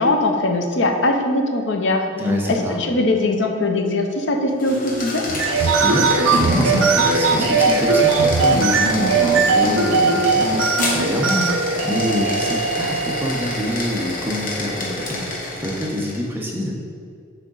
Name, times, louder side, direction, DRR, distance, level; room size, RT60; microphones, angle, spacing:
voice 1, 0.0-2.1 2.5-5.2, left 2 dB, 60° left, 4 dB, 0.7 m, -20 dB
voice 2, 2.1-2.8 5.6-11.5 11.8-15.2 15.6-16.7, equal, 10° right, -2 dB, 0.8 m, -25 dB
sound 1, 4.5-16.3, left 2 dB, 45° left, 1.1 m, -28 dB
sound 2, 5.3-13.5, right 4 dB, 80° right, 0.5 m, -19 dB
6.6 x 5.0 x 3.9 m, 2.2 s
head